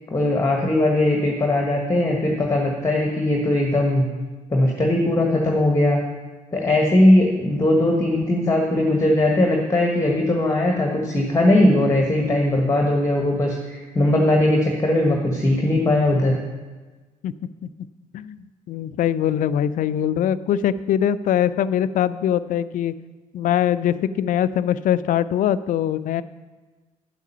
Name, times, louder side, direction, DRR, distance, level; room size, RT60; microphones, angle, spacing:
voice 1, 0.1-4.0 4.5-6.0 6.5-16.4, left 1 dB, 15° left, 1 dB, 1.4 m, -19 dB
voice 2, 18.1-22.9 23.3-26.2, left 10 dB, 45° left, 16 dB, 0.4 m, -22 dB
9.8 x 8.2 x 5.6 m, 1.3 s
figure-of-eight pair, 50°, 20 cm